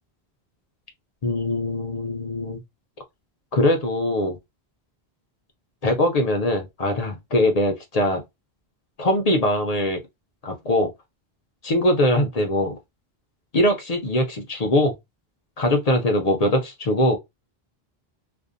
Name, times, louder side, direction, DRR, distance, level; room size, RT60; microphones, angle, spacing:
voice 1, 1.2-2.6 3.5-4.4 5.8-8.2 9.0-10.0 10.4-10.9 11.6-12.7 13.5-14.9 15.6-17.2, left 1 dB, 50° left, 0.5 m, -22 dB
2.6 x 2.1 x 2.4 m
omnidirectional pair, 1.1 m